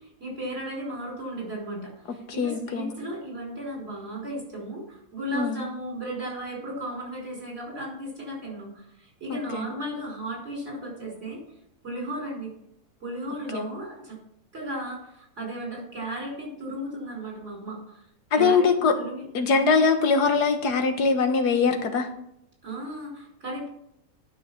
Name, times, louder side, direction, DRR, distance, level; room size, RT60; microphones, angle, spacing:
voice 1, 0.0-11.4 11.8-12.5 13.0-14.2 14.5-18.0 18.3-19.3 22.6-23.7, right 1 dB, 45° right, -2 dB, 5.5 m, -35 dB
voice 2, 2.4-2.9 5.3-5.6 9.3-9.7 13.5-13.6 18.3-18.9 19.3-22.1, left 5 dB, 80° left, 7 dB, 1.8 m, -22 dB
11.5 x 6.4 x 5.7 m, 0.76 s
omnidirectional pair, 1.7 m